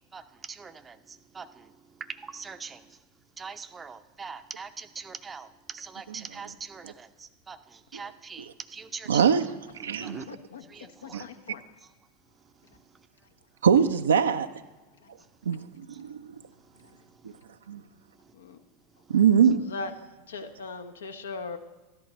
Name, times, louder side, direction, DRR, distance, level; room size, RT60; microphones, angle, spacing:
voice 1, 0.0-3.0 3.4-9.4 9.8-10.3 10.6-11.3 11.8-11.9 12.4-13.1 15.2-15.3 15.9-16.0 16.6-17.4 19.0-19.1, right 5 dB, 20° right, 0.5 m, -43 dB
voice 2, 9.1-9.4 9.8-10.2 11.1-11.2 13.6-14.5 15.5-16.3 17.7-17.8 19.1-19.6, right 7 dB, 75° right, 0.4 m, -22 dB
voice 3, 10.3-10.7 11.0-11.6 19.7-19.9 20.3-21.6, left 4 dB, 75° left, 0.9 m, -38 dB
13.0 x 11.0 x 4.1 m
figure-of-eight pair, 85°, 0 cm